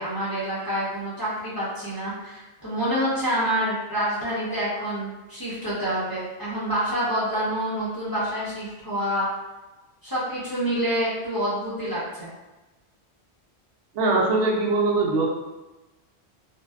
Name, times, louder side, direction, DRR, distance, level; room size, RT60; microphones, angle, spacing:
voice 1, 0.0-9.3 10.0-12.3, equal, 25° left, -10 dB, 0.6 m, -27 dB
voice 2, 13.9-15.3, right 3 dB, 80° right, -2 dB, 0.8 m, -21 dB
2.5 x 2.1 x 2.3 m, 1.1 s
omnidirectional pair, 1.1 m